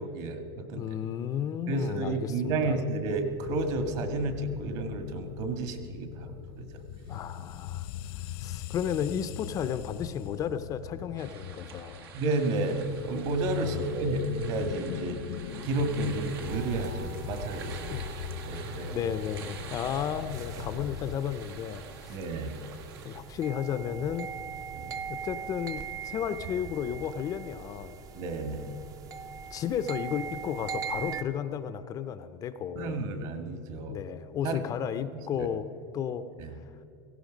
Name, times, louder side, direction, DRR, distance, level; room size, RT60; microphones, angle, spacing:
voice 1, 0.0-0.8 1.7-6.7 12.1-15.2 15.6-17.9 18.4-19.0 20.5-20.6 22.1-22.5 24.7-25.0 28.1-28.7 32.8-34.0 34.4-34.6 35.3-35.5 36.4-36.6, right 2 dB, 50° right, 7 dB, 1.6 m, -31 dB
voice 2, 0.8-2.8 7.1-7.9 8.2-12.1 13.6-13.7 17.9-18.1 18.9-22.2 23.0-24.3 25.1-28.0 29.5-33.0 33.9-35.7 35.9-36.2, left 8 dB, 30° left, 11 dB, 0.5 m, -33 dB
sound 1, 3.0-21.2, left 10 dB, 75° left, 0.9 m, -41 dB
sound 2, 11.2-23.2, right 7 dB, 90° right, 1.8 m, -47 dB
sound 3, 16.5-31.2, right 7 dB, 30° right, 0.6 m, -41 dB
17.5 x 15.5 x 5.1 m, 2.9 s
supercardioid pair, 150°, 12 cm